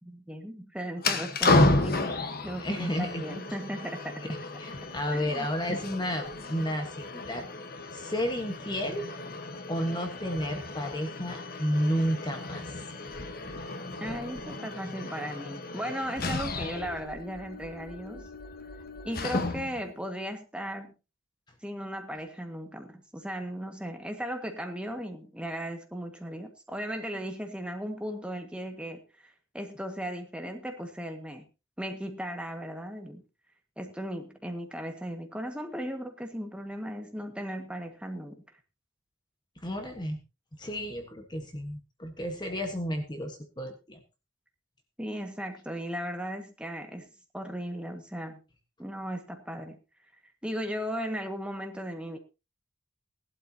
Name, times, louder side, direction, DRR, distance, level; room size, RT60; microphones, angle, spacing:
voice 1, 0.0-4.2 5.1-5.8 14.0-18.3 19.0-20.9 21.6-31.5 31.8-33.2 33.8-38.4 45.0-47.1 47.3-48.4 48.8-49.8 50.4-52.2, equal, 5° right, 4 dB, 1.7 m, -37 dB
sound 1, 1.0-19.9, left 2 dB, 50° left, 1.4 m, -32 dB
voice 2, 2.4-3.2 4.6-7.4 7.9-9.1 9.7-12.6 39.6-40.2 40.5-44.0, equal, 20° left, 5 dB, 1.4 m, -32 dB
18.0 x 12.0 x 2.9 m, 0.29 s
head